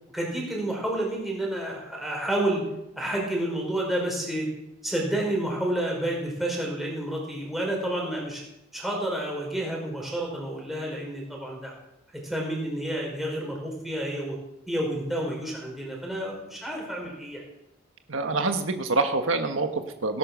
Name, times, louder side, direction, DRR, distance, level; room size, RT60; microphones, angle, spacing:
voice 1, 0.1-2.6 2.9-4.5 4.8-8.4 8.7-11.7 12.2-14.3 14.7-17.4, right 1 dB, ahead, -2 dB, 5.0 m, -30 dB
voice 2, 18.1-20.2, right 3 dB, 80° right, 6 dB, 1.4 m, -26 dB
18.5 x 11.0 x 6.2 m, 0.87 s
head